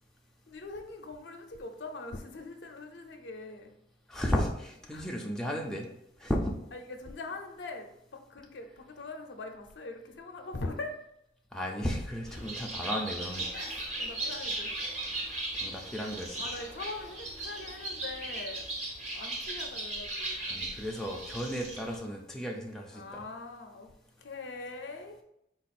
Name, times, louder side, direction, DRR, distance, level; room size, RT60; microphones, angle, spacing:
voice 1, 0.5-3.7 4.9-5.1 6.7-10.9 13.5-14.8 15.5-15.6 16.4-18.7 19.1-20.7 22.9-23.9 24.2-25.2, left 3 dB, 75° left, 5 dB, 0.5 m, -42 dB
voice 2, 4.1-5.9 6.2-6.6 11.5-13.5 15.6-16.4 20.5-23.2, equal, 5° left, -1 dB, 0.4 m, -34 dB
Bird, 12.3-22.0, right 2 dB, 40° right, 0.9 m, -37 dB
4.2 x 2.4 x 4.1 m, 0.80 s
head